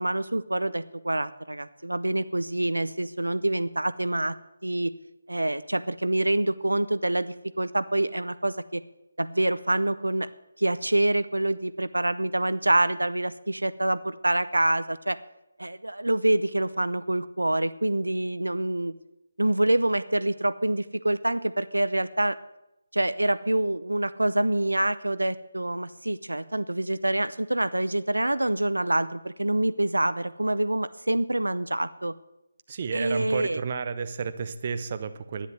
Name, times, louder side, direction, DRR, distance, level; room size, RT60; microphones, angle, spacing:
voice 1, 0.0-4.4 4.6-4.9 5.3-8.8 9.2-10.3 10.6-15.2 15.6-18.9 19.4-22.4 22.9-32.1 32.9-33.6, right 1 dB, 75° right, 14 dB, 0.6 m, -26 dB
voice 2, 32.7-35.5, right 5 dB, 35° right, 10 dB, 0.7 m, -31 dB
10.5 x 10.0 x 7.9 m, 0.90 s
figure-of-eight pair, 150°, 0 cm